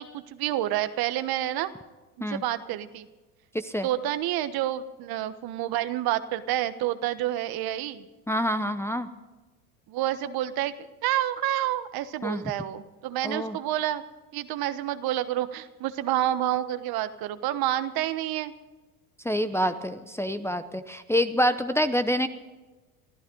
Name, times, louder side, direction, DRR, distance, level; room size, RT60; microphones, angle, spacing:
voice 1, 0.0-1.7 2.2-3.1 3.8-8.0 9.9-10.7 11.0-14.0 14.3-18.5 19.5-19.7, right 13 dB, 55° right, 12 dB, 1.3 m, -29 dB
voice 2, 3.5-3.9 8.3-9.1 12.2-12.4 13.2-13.6 19.2-22.3, equal, 5° left, 8 dB, 0.8 m, -26 dB
24.0 x 14.0 x 3.9 m, 1.2 s
hypercardioid pair, 90°, 45 cm